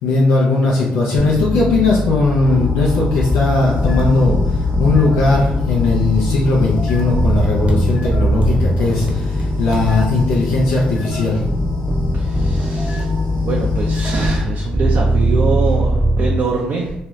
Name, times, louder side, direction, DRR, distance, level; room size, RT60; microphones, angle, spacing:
voice 1, 0.0-11.4, left 3 dB, 85° left, -4 dB, 0.5 m, -17 dB
sound 1, 1.2-3.3 3.8-10.9 11.4-16.4, equal, 10° right, 0.4 m, -21 dB
sound 2, 2.4-14.5, left 3 dB, 35° left, 1.2 m, -24 dB
sound 3, 7.6-7.8 8.4-10.1 11.5-11.9 12.2-12.4 12.7-13.9, right 2 dB, 35° right, 0.8 m, -29 dB
voice 2, 12.1-13.1 13.3-16.9, right 4 dB, 60° right, -3 dB, 0.5 m, -23 dB
2.7 x 2.3 x 3.1 m, 0.88 s
supercardioid pair, 55°, 4 cm